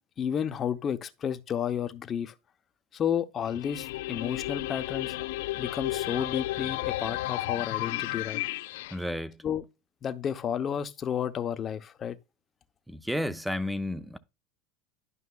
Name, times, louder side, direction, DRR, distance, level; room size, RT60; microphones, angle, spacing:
voice 1, 0.2-2.3 2.9-5.2 5.6-8.4 9.4-9.6 10.0-12.2, left 8 dB, 30° left, 0.8 m, -31 dB
sound 1, 3.4-9.0, left 17 dB, 75° left, 0.3 m, -33 dB
voice 2, 8.9-9.3 12.9-14.2, left 1 dB, ahead, 0.6 m, -32 dB
11.5 x 5.3 x 2.3 m
supercardioid pair, 115°, 0 cm